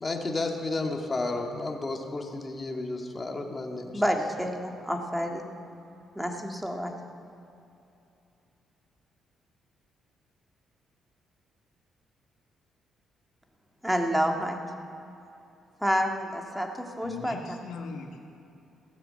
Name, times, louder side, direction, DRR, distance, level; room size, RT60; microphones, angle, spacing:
voice 1, 0.0-4.0, left 2 dB, 25° left, 2 dB, 1.8 m, -32 dB
voice 2, 3.9-5.5 6.2-6.9 13.8-14.6 15.8-16.7 17.0-17.4, equal, 5° right, 3 dB, 1.8 m, -28 dB
voice 3, 17.0-18.2, left 5 dB, 85° left, 1 dB, 1.5 m, -39 dB
16.0 x 10.0 x 7.6 m, 2.8 s
cardioid pair, 90°, 0 cm